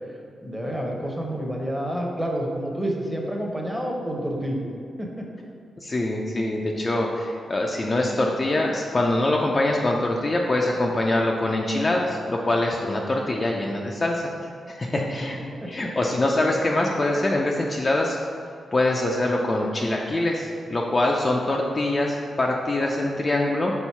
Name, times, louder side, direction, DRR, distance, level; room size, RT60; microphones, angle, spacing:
voice 1, 0.4-4.6 5.0-5.3 14.9-15.0 15.3-15.7, equal, 5° right, 0 dB, 0.8 m, -29 dB
voice 2, 5.8-14.3 14.7-15.4 15.7-18.2 18.7-23.7, left 1 dB, 25° left, -1 dB, 0.4 m, -24 dB
4.5 x 3.9 x 5.6 m, 2.4 s
wide cardioid pair, 145°, 0 cm